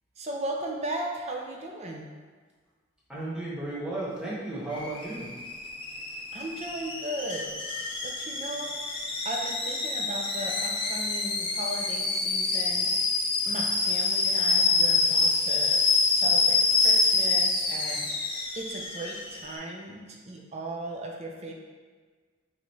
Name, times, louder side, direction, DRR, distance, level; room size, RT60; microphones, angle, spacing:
voice 1, 0.2-2.1 6.3-7.5 8.0-8.7 9.2-12.9 13.4-15.8 16.1-18.1 18.5-21.5, right 1 dB, 35° right, 0 dB, 0.5 m, -36 dB
voice 2, 3.1-5.3, right 2 dB, 5° right, -8 dB, 0.9 m, -34 dB
Alarm / Boiling, 4.7-19.5, left 3 dB, 25° left, 0.5 m, -26 dB
4.6 x 3.1 x 2.7 m, 1.5 s
head